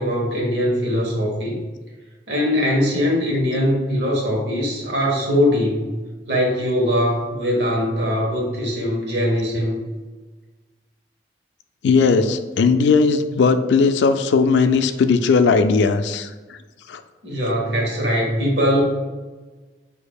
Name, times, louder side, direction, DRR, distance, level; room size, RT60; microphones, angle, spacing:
voice 1, 0.0-1.6 2.3-5.9 6.3-9.8 17.2-18.8, equal, 75° right, -2 dB, 1.2 m, -21 dB
voice 2, 11.8-16.6 16.9-17.0, left 4 dB, 80° left, 9 dB, 0.3 m, -17 dB
6.4 x 2.8 x 2.3 m, 1.3 s
head